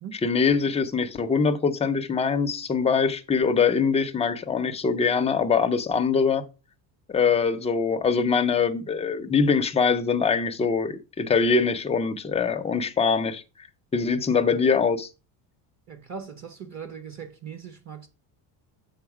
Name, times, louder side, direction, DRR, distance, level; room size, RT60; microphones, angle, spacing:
voice 1, 0.2-6.4 7.1-13.4 13.9-15.1, left 5 dB, 15° left, 0.3 m, -23 dB
voice 2, 15.9-18.1, right 7 dB, 35° right, 0.7 m, -39 dB
7.0 x 3.9 x 4.7 m
cardioid pair, 145°, 48 cm